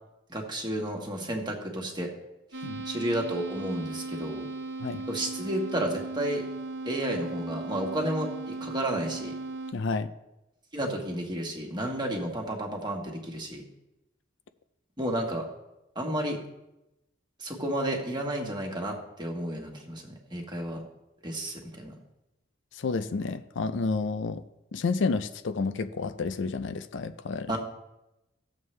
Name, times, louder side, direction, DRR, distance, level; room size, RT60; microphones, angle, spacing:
voice 1, 0.3-2.1 2.8-4.5 5.1-6.4 6.8-9.3 10.7-13.6 15.0-15.4 15.9-16.4 17.4-20.8 21.2-21.9 27.5-27.6, right 1 dB, 20° right, 1 dB, 1.4 m, -32 dB
sound 1, 2.5-9.7, right 3 dB, 60° right, 0.9 m, -37 dB
voice 2, 9.7-10.1 22.8-24.4 24.7-27.6, left 4 dB, 65° left, 11 dB, 0.4 m, -30 dB
15.5 x 7.2 x 3.2 m, 0.93 s
head